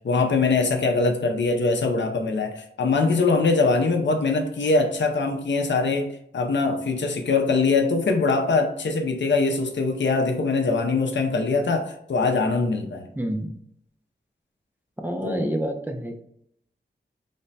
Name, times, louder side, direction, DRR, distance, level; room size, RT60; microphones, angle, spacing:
voice 1, 0.0-6.1 6.3-13.1 15.2-15.5, left 3 dB, 80° left, 4 dB, 0.5 m, -22 dB
voice 2, 13.2-13.5 15.0-16.2, equal, 10° right, 3 dB, 0.4 m, -28 dB
3.2 x 2.1 x 4.0 m, 0.71 s
wide cardioid pair, 95°, 18 cm